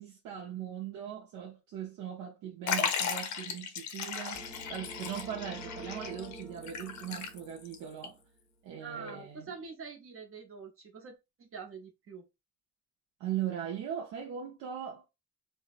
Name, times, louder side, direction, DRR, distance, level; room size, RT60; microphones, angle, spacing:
voice 1, 0.0-8.2 8.6-9.5 13.2-15.1, right 9 dB, 80° right, 0.6 m, -39 dB
Liquid, 2.7-7.7 8.0-8.1 9.1-9.2, left 7 dB, 70° left, 0.6 m, -36 dB
sound 1, 4.3-8.3, right 1 dB, 10° right, 0.8 m, -47 dB
voice 2, 8.8-12.2, right 5 dB, 45° right, 0.8 m, -45 dB
2.6 x 2.0 x 2.4 m
cardioid pair, 90°, 30 cm